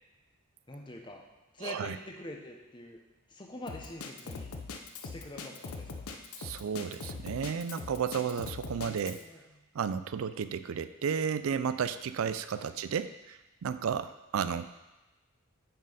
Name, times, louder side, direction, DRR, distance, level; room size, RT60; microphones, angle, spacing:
voice 1, 0.7-1.3 1.5-3.0 3.3-4.5 5.0-6.1 8.9-9.4 12.5-12.7, left 1 dB, 20° left, 1 dB, 0.8 m, -45 dB
voice 2, 1.6-2.0 6.4-9.2 9.7-14.7, right 7 dB, 65° right, 12 dB, 0.3 m, -33 dB
Drum kit, 3.7-9.2, left 4 dB, 80° left, 0.6 m, -41 dB
6.8 x 4.5 x 5.0 m, 1.1 s
head